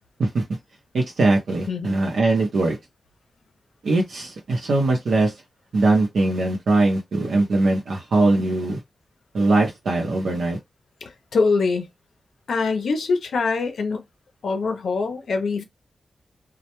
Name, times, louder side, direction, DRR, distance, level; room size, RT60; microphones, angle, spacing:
voice 1, 0.9-2.8 3.8-5.3 5.7-8.8 9.3-10.6, right 2 dB, 85° right, 0.7 m, -21 dB
voice 2, 11.0-11.9 12.5-14.0 14.4-15.6, left 4 dB, 85° left, 0.5 m, -23 dB
2.1 x 2.1 x 2.9 m
wide cardioid pair, 155°, 0 cm